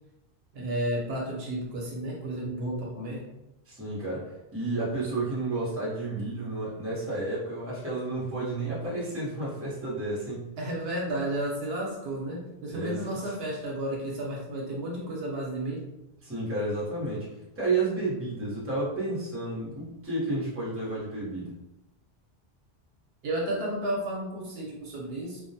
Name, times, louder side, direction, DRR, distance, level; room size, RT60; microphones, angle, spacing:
voice 1, 0.5-3.2 10.6-15.8 23.2-25.4, right 1 dB, 70° right, -2 dB, 0.8 m, -32 dB
voice 2, 3.7-10.6 12.7-13.1 16.2-17.3 17.6-21.5, right 2 dB, 15° right, -8 dB, 0.7 m, -31 dB
2.2 x 2.1 x 2.6 m, 0.94 s
omnidirectional pair, 1.1 m